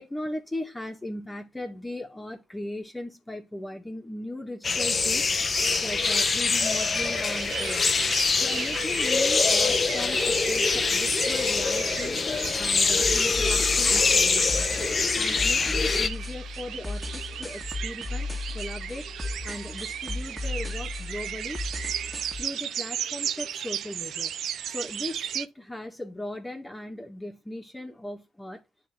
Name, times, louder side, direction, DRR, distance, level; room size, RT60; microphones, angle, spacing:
voice 1, 0.0-5.4 5.8-7.9 8.4-12.2 12.5-14.7 15.2-18.3 18.5-19.1 19.4-21.6 22.4-24.3 24.7-28.6, left 1 dB, 10° left, 1.6 m, -38 dB
sound 1, 4.6-16.1, left 4 dB, 35° left, 0.8 m, -24 dB
sound 2, 5.6-25.5, right 9 dB, 70° right, 0.5 m, -36 dB
sound 3, 13.0-22.4, left 3 dB, 5° right, 1.8 m, -35 dB
10.5 x 3.7 x 3.5 m
cardioid pair, 90°, 0 cm